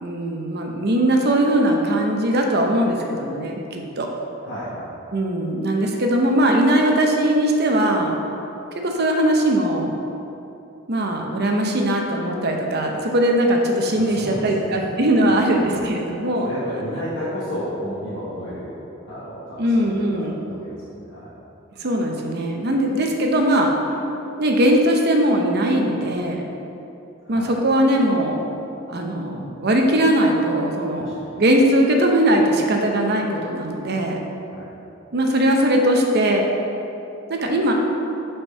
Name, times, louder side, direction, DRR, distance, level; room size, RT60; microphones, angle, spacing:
voice 1, 0.0-4.1 5.1-8.2 8.8-9.9 10.9-16.5 19.6-20.4 21.8-24.0 24.4-26.4 27.3-28.4 28.9-34.2 35.1-36.5 37.3-37.7, right 1 dB, 50° right, 1 dB, 0.7 m, -20 dB
voice 2, 4.4-4.9 14.0-14.9 15.5-15.7 16.4-18.7 19.0-21.3 27.3-27.6 31.0-31.3 34.5-34.6, equal, 60° left, -10 dB, 1.2 m, -32 dB
5.1 x 4.4 x 5.5 m, 2.8 s
head